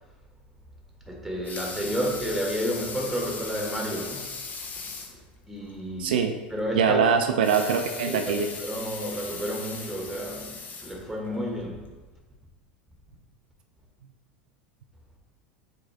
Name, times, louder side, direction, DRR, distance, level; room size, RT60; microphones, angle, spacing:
voice 1, 1.1-4.4 5.5-6.2 6.5-7.1 7.9-11.9, equal, 5° right, 0 dB, 1.6 m, -31 dB
Water tap faucet / Sink (filling or washing) / Liquid, 1.2-5.2 5.7-5.8 6.1-6.2 7.3-11.4 12.0-12.1, left 4 dB, 30° left, 0.8 m, -38 dB
voice 2, 6.0-6.4 6.7-8.5, right 6 dB, 70° right, 5 dB, 0.5 m, -23 dB
6.7 x 4.3 x 3.3 m, 1.2 s
hypercardioid pair, 80°, 5 cm